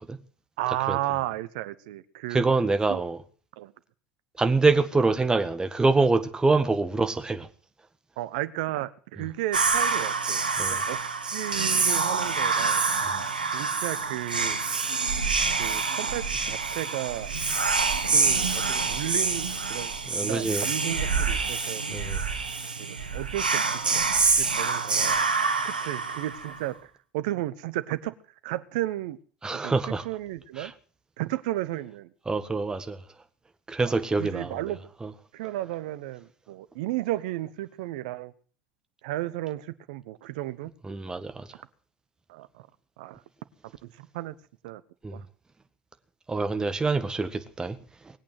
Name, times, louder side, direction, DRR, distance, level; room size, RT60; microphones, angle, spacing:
voice 1, 0.6-2.4 2.9-3.0 3.6-3.7 8.2-10.4 10.7-11.0 11.3-12.8 13.5-14.6 15.5-17.3 18.1-19.9 20.2-21.8 22.8-23.8 24.3-25.2 25.6-28.1 28.4-29.2 29.6-29.7 30.0-30.7 31.2-32.1 33.8-34.8 35.3-38.3 39.0-40.7 42.3-42.7 43.0-43.2 44.0-44.3 44.6-44.8 45.1-45.2, right 15 dB, 65° right, 1.0 m, -33 dB
voice 2, 2.3-3.2 4.4-7.5 10.6-10.8 13.1-13.2 20.1-20.7 21.9-22.2 29.4-30.0 30.6-30.7 32.3-33.0 33.7-34.6 35.0-35.1 40.8-41.5 45.0-45.2 46.3-47.8, right 3 dB, 15° right, 1.8 m, -25 dB
Whispering, 9.5-26.7, right 4 dB, 90° right, 1.4 m, -26 dB
20.5 x 8.8 x 7.7 m
figure-of-eight pair, 70°, 5 cm